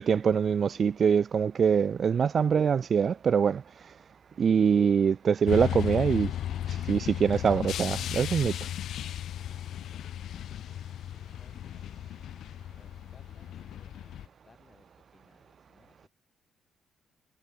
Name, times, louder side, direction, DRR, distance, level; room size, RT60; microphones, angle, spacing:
voice 1, 0.0-3.9 4.4-6.3 6.7-8.6, right 7 dB, 50° right, 0.6 m, -24 dB
sound 1, 5.5-14.3, left 11 dB, 75° left, 0.8 m, -35 dB
voice 2, 9.3-12.0 12.7-14.8 15.1-16.1, left 5 dB, 35° left, 6.0 m, -63 dB
cardioid pair, 90°, 0 cm